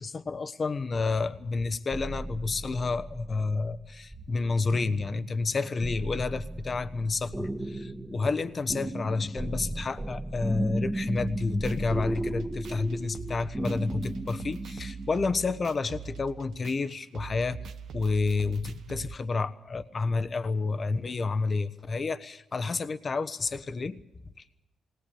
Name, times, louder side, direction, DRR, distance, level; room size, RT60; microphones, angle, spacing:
voice 1, 0.0-24.0, left 4 dB, 45° left, 12 dB, 1.2 m, -30 dB
sound 1, 1.9-15.2, right 1 dB, 20° right, 1.9 m, -36 dB
sound 2, 11.2-19.1, right 7 dB, 70° right, 0.9 m, -43 dB
19.5 x 18.5 x 8.7 m, 0.86 s
supercardioid pair, 50°, 0 cm